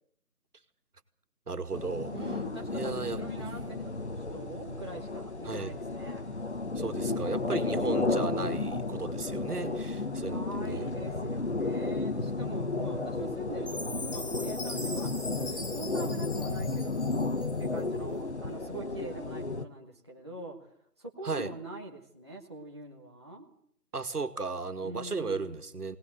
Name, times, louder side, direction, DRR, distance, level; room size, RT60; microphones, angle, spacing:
voice 1, 1.5-2.1 2.7-3.5 5.4-5.8 6.8-10.9 14.3-14.4 21.2-21.5 23.9-26.0, right 4 dB, 75° right, 2.3 m, -35 dB
sound 1, 1.7-19.7, left 3 dB, 45° left, 1.3 m, -33 dB
voice 2, 2.1-6.3 9.5-9.6 10.2-17.0 17.6-20.6 21.0-23.5 24.8-25.6, right 2 dB, 15° right, 1.3 m, -43 dB
Chime, 13.7-17.9, left 2 dB, 65° left, 4.0 m, -42 dB
22.0 x 19.0 x 7.9 m
figure-of-eight pair, 175°, 47 cm